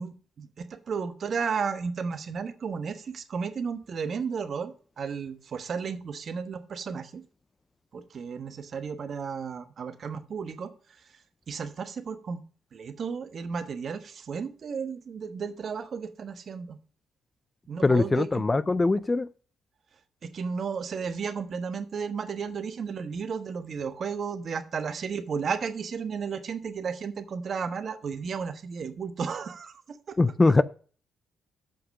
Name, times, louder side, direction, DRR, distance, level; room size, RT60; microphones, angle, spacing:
voice 1, 0.0-7.2 7.9-10.7 11.5-12.4 12.7-16.8 17.7-18.4 20.2-30.2, right 6 dB, 50° right, 1.1 m, -33 dB
voice 2, 17.8-19.3 30.2-30.6, left 3 dB, 20° left, 0.4 m, -22 dB
7.3 x 5.8 x 6.2 m
cardioid pair, 90°, 0 cm